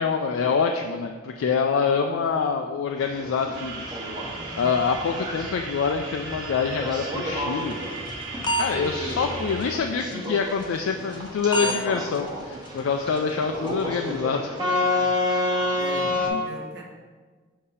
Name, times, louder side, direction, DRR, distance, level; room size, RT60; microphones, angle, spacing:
voice 1, 0.0-3.8 4.5-7.8 8.6-14.5 16.3-16.4, left 5 dB, 90° left, 4 dB, 0.3 m, -25 dB
sound 1, 3.0-16.3, left 2 dB, 20° right, 0.9 m, -30 dB
sound 2, 3.5-9.8, right 2 dB, 75° right, 1.2 m, -37 dB
voice 2, 4.3-4.9 12.8-12.9 15.0-15.1 15.7-16.8, right 2 dB, 55° right, 0 dB, 1.0 m, -41 dB
sound 3, 7.7-8.7 9.1-9.2 9.6-9.8 10.1-10.3 10.6-10.8 11.1-11.3 11.5-11.8 12.1-12.3 12.7-12.8 13.2-13.3 13.7-13.8, right 1 dB, 25° left, 0.5 m, -27 dB
6.6 x 2.7 x 5.5 m, 1.5 s
head